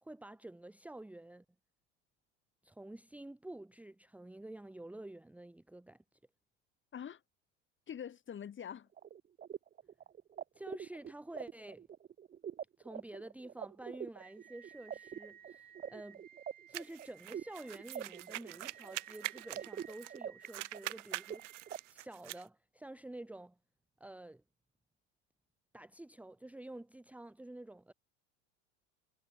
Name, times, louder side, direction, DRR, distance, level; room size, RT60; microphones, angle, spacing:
voice 1, 0.0-1.4 2.6-6.0 10.5-11.9 12.8-16.2 16.7-23.6 24.0-24.4 25.7-27.9, right 1 dB, 5° right, 1.3 m, -49 dB
voice 2, 7.9-8.9, left 8 dB, 35° left, 7.9 m, -44 dB
sound 1, 9.0-21.8, right 9 dB, 25° right, 0.8 m, -46 dB
sound 2, 16.7-20.2 20.4-22.4, right 17 dB, 85° right, 0.9 m, -44 dB
hypercardioid pair, 100°, 36 cm